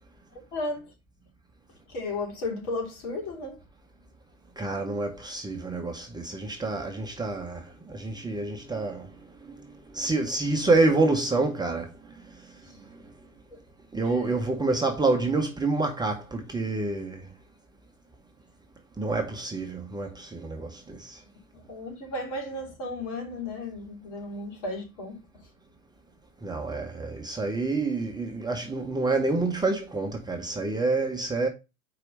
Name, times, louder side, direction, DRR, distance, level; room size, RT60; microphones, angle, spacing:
voice 1, 0.3-0.9 1.9-3.6 12.6-12.8 13.5-13.6 14.0-14.3 21.5-25.2, left 2 dB, 55° left, 3.1 m, -34 dB
voice 2, 4.6-9.1 9.5-9.6 9.9-11.9 13.9-17.3 19.0-21.2 26.4-31.5, right 3 dB, 10° right, 1.0 m, -27 dB
4.8 x 4.8 x 5.0 m
hypercardioid pair, 95°, 41 cm